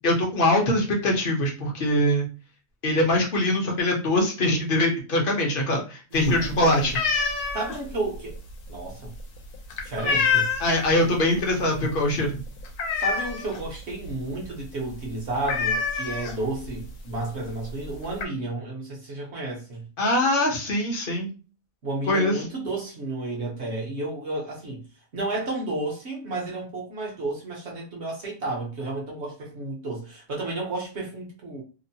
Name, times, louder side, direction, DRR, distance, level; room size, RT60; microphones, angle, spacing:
voice 1, 0.0-2.3 2.8-7.0 10.6-12.4 20.0-21.3 22.1-22.4, left 1 dB, 45° left, 0.8 m, -23 dB
sound 1, 6.1-10.9 11.2-11.6 11.9-12.0 12.3-13.7 14.0-14.2 14.4-14.6 14.9-15.0 15.4-16.7 17.5-17.6 17.8-18.3, left 5 dB, 80° left, 1.2 m, -27 dB
voice 2, 6.1-7.0 7.5-8.4 8.7-9.1 9.8-10.5 13.0-19.9 21.8-24.8 25.1-31.6, right 2 dB, 55° right, 1.0 m, -32 dB
2.9 x 2.0 x 2.7 m
omnidirectional pair, 1.6 m